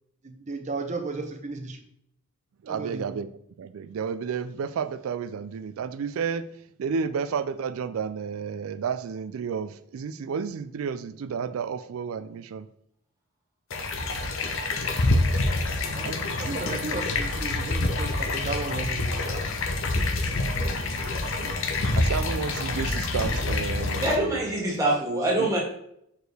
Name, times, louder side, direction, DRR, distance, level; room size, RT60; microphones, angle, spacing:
voice 1, 0.2-1.8 2.7-3.2 15.9-16.1 16.4-19.4 20.0-20.1, right 3 dB, 30° right, 4 dB, 0.7 m, -34 dB
voice 2, 2.6-3.3 3.6-6.5 6.8-12.7 16.0-16.5 21.4-21.5 22.0-24.7 25.4-25.5, right 6 dB, 70° right, 13 dB, 0.3 m, -31 dB
sound 1, 13.7-24.2, left 2 dB, 60° left, 0.7 m, -27 dB
voice 3, 24.0-25.6, right 1 dB, 15° right, -5 dB, 1.8 m, -24 dB
6.3 x 4.5 x 3.3 m, 0.74 s
head